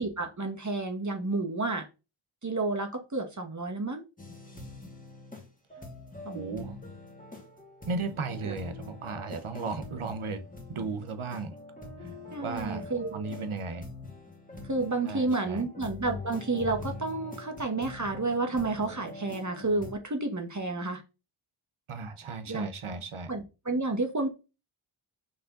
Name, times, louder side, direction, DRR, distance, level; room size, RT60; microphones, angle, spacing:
voice 1, 0.0-1.9 2.4-4.0 6.2-6.8 8.4-8.5 12.3-13.5 14.6-21.0 22.5-22.7 23.3-24.3, right 3 dB, 35° right, 1.5 m, -31 dB
sound 1, 4.2-19.9, left 2 dB, 15° left, 2.1 m, -44 dB
voice 2, 6.3-6.8 7.9-10.4 10.7-11.6 12.0-12.1 12.4-12.8 13.1-13.9 15.1-15.7 21.9-23.3, right 4 dB, 80° right, 1.2 m, -35 dB
6.1 x 5.5 x 3.9 m
wide cardioid pair, 80°, 50 cm